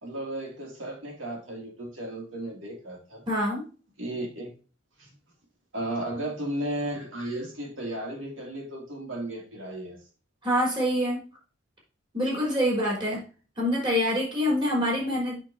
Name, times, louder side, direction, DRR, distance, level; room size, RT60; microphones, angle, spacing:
voice 1, 0.0-3.2 4.0-4.5 5.0-5.1 5.7-10.0, right 1 dB, 80° right, 1 dB, 2.6 m, -34 dB
voice 2, 3.3-3.6 10.4-11.2 12.1-13.2 13.6-15.4, equal, 25° right, -3 dB, 4.2 m, -25 dB
8.2 x 6.2 x 2.8 m, 0.35 s
head